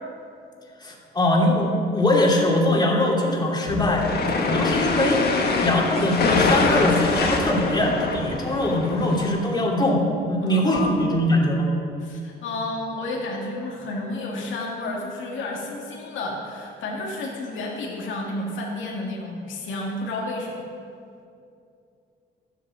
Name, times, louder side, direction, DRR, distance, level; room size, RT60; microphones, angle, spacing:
voice 1, 0.8-4.1 4.4-11.7, left 1 dB, 20° left, -2 dB, 2.7 m, -22 dB
sound 1, 3.7-9.3, left 3 dB, 55° left, 1.6 m, -24 dB
voice 2, 10.4-11.1 12.0-20.6, left 2 dB, 80° left, -2 dB, 2.2 m, -31 dB
13.0 x 8.3 x 6.2 m, 2.5 s
cardioid pair, 90°, 20 cm